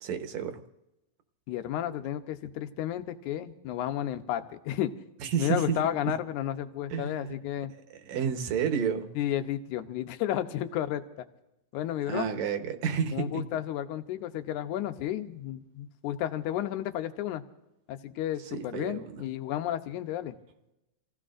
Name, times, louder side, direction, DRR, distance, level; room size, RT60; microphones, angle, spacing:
voice 1, 0.0-0.6 5.2-6.1 6.9-7.4 7.9-9.1 12.1-13.4 18.5-19.2, right 7 dB, 65° right, 6 dB, 2.2 m, -31 dB
voice 2, 1.5-4.9 5.4-7.7 9.2-11.0 11.7-12.3 13.1-17.4 17.9-20.3, left 11 dB, 75° left, 8 dB, 2.2 m, -32 dB
28.5 x 16.0 x 2.5 m, 0.93 s
omnidirectional pair, 3.7 m